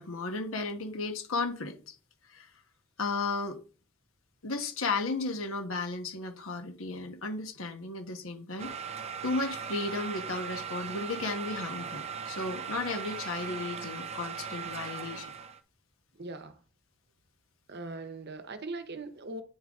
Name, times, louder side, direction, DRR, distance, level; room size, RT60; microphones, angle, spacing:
voice 1, 0.0-1.9 2.3-2.5 3.0-3.6 4.4-8.7 9.2-15.3, left 3 dB, 75° left, 1.3 m, -34 dB
sound 1, 8.6-15.6, right 6 dB, 30° right, 0.5 m, -39 dB
voice 2, 16.2-16.5 17.7-19.4, right 2 dB, 55° right, 0.8 m, -40 dB
9.3 x 3.9 x 3.6 m
head